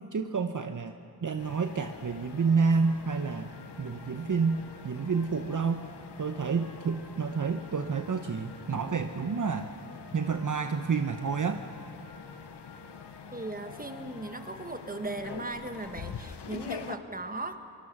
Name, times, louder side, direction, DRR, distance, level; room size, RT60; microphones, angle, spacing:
voice 1, 0.1-0.9 1.2-3.5 3.8-5.8 6.2-9.7 10.1-11.6, right 5 dB, 50° right, 7 dB, 0.8 m, -29 dB
sound 1, 1.4-17.0, left 7 dB, 85° left, 0.9 m, -45 dB
sound 2, 1.5-16.6, left 3 dB, 50° left, 4.2 m, -54 dB
voice 2, 13.3-17.6, right 2 dB, 20° right, 8 dB, 1.4 m, -37 dB
23.0 x 19.5 x 6.1 m, 2.8 s
cardioid pair, 55°, 39 cm